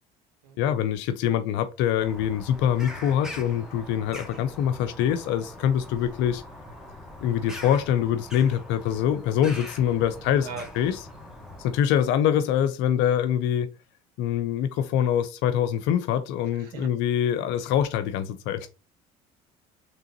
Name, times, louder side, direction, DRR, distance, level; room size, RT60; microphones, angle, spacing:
voice 1, 0.6-6.4 7.2-10.5 10.7-11.0 11.6-13.7 14.2-18.7, left 9 dB, 65° left, 0.5 m, -24 dB
Bird vocalization bird call bird song, 2.0-11.8, left 1 dB, 5° right, 1.3 m, -42 dB
voice 2, 10.2-10.7 11.8-11.9 16.5-16.9, right 5 dB, 80° right, 1.1 m, -39 dB
3.7 x 3.0 x 2.8 m
hypercardioid pair, 70°, 20 cm